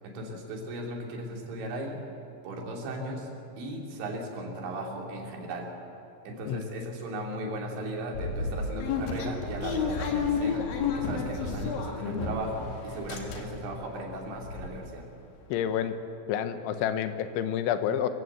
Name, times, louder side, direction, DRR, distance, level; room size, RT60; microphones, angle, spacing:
voice 1, 0.0-2.0 2.4-3.3 3.6-5.7 6.2-15.1, right 1 dB, 80° right, 0 dB, 5.2 m, -37 dB
sound 1, 8.1-12.6 12.9-13.8 14.1-14.2 14.4-14.7, left 5 dB, 60° left, 3.4 m, -31 dB
voice 2, 15.5-15.9 16.3-18.1, left 9 dB, 90° left, 9 dB, 3.4 m, -28 dB
25.5 x 15.5 x 8.0 m, 2.8 s
omnidirectional pair, 5.2 m